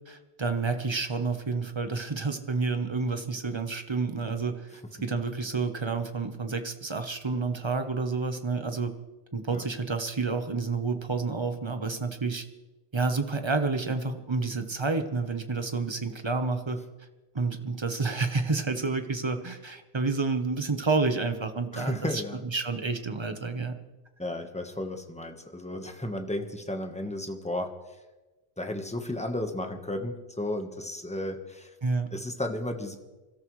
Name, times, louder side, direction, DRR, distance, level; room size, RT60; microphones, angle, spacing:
voice 1, 0.1-8.9 9.3-12.4 12.9-16.8 17.3-22.2 22.5-23.8 31.8-32.1, right 4 dB, 25° right, 7 dB, 1.0 m, -29 dB
voice 2, 21.7-22.4 24.2-28.0 28.6-31.7 32.1-33.0, left 1 dB, 5° left, 5 dB, 1.2 m, -33 dB
27.0 x 13.5 x 3.2 m, 1.1 s
omnidirectional pair, 1.1 m